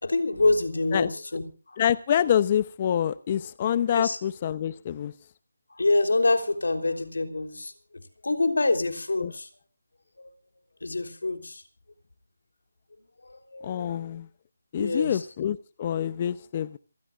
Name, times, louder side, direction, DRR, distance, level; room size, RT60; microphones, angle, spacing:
voice 1, 0.0-1.8 3.9-4.2 5.7-7.7 8.2-9.5 10.2-10.3 10.8-11.6 13.2-14.0 14.8-15.2, left 2 dB, 80° left, 6 dB, 3.5 m, -26 dB
voice 2, 1.8-5.1 9.2-9.3 13.6-14.3 14.7-16.8, left 9 dB, 30° left, 15 dB, 0.7 m, -26 dB
27.5 x 16.5 x 2.5 m, 0.35 s
figure-of-eight pair, 165°, 0 cm